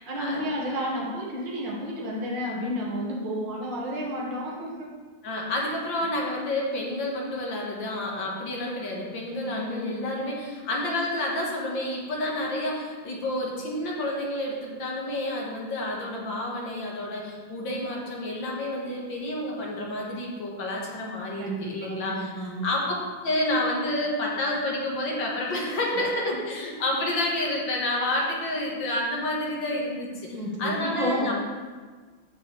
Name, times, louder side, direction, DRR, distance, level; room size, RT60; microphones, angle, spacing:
voice 1, 0.0-4.9 6.0-6.1 9.4-10.2 21.4-22.7 30.3-31.3, equal, 65° right, -3 dB, 2.3 m, -31 dB
voice 2, 5.2-22.9 23.2-30.3 30.6-31.3, left 1 dB, 75° left, -2 dB, 2.2 m, -29 dB
14.0 x 5.6 x 3.3 m, 1.4 s
omnidirectional pair, 2.1 m